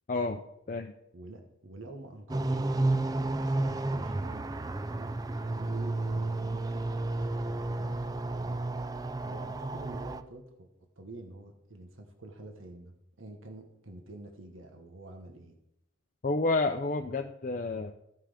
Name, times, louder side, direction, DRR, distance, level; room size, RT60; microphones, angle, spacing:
voice 1, 0.1-0.4 0.7-0.9 16.2-17.9, left 3 dB, 40° left, 5 dB, 0.5 m, -29 dB
voice 2, 1.1-8.6 9.2-10.7 11.0-15.5, right 2 dB, 80° right, 3 dB, 1.3 m, -47 dB
sound 1, 2.3-10.2, right 2 dB, 20° right, 0.4 m, -32 dB
13.5 x 5.8 x 5.0 m, 0.79 s
head